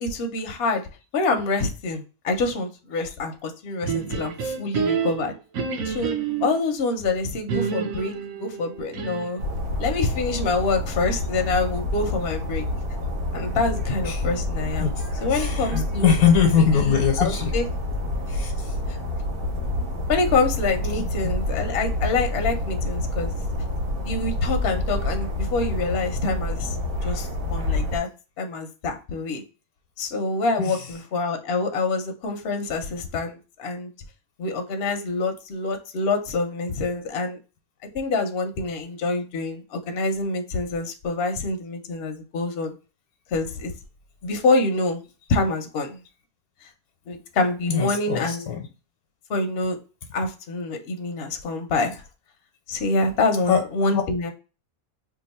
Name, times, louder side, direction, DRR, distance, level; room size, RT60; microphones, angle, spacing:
voice 1, 0.0-0.8 1.1-5.3 5.8-6.1 6.4-9.4 9.8-12.6 13.3-14.9 15.2-16.1 16.6-17.6 18.9-19.0 20.1-23.3 24.0-26.8 27.0-28.1 28.4-29.4 30.0-33.9 34.4-37.4 37.9-42.7 43.3-43.7 44.2-45.0 45.3-46.0 47.1-48.5 49.3-49.8 50.1-52.0 52.7-54.3, left 3 dB, 60° left, 5 dB, 0.7 m, -26 dB
sound 1, 3.8-6.6 7.5-9.5, right 6 dB, 70° right, 1.0 m, -28 dB
sound 2, 9.4-28.0, left 2 dB, 90° right, 1.4 m, -28 dB
voice 2, 15.3-17.6 18.3-18.7 19.8-19.9 21.0-21.1 30.6-31.1 47.4-48.6 53.4-54.0, left 7 dB, 90° left, 3 dB, 1.1 m, -23 dB
2.8 x 2.3 x 4.0 m, 0.32 s
omnidirectional pair, 1.5 m